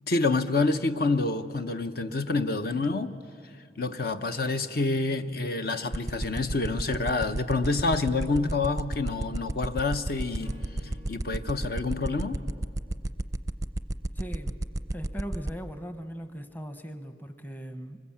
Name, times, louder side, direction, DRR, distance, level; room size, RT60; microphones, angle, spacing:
voice 1, 0.1-3.2 3.8-10.5 11.1-12.4, left 3 dB, 55° left, 9 dB, 0.8 m, -27 dB
sound 1, 5.9-15.5, right 1 dB, 20° right, 0.5 m, -30 dB
Acoustic guitar / Strum, 10.4-13.7, equal, 85° left, 3.7 m, -54 dB
voice 2, 14.2-14.6 14.9-18.0, equal, 10° left, 9 dB, 0.9 m, -39 dB
24.5 x 20.5 x 8.6 m, 2.2 s
head